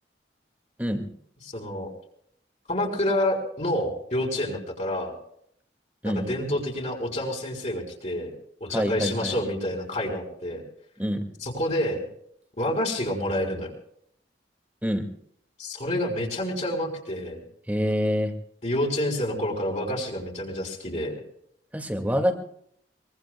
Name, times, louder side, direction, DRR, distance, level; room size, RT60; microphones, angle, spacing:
voice 1, 1.4-1.9 2.7-5.1 6.0-8.3 8.6-10.6 11.4-12.0 12.6-13.7 15.6-17.4 18.6-21.1, left 1 dB, 40° left, -1 dB, 4.6 m, -28 dB
voice 2, 8.7-9.4 11.0-11.3 14.8-15.0 17.7-18.3 21.7-22.3, equal, 10° right, 4 dB, 2.0 m, -26 dB
23.5 x 23.0 x 2.3 m, 0.69 s
head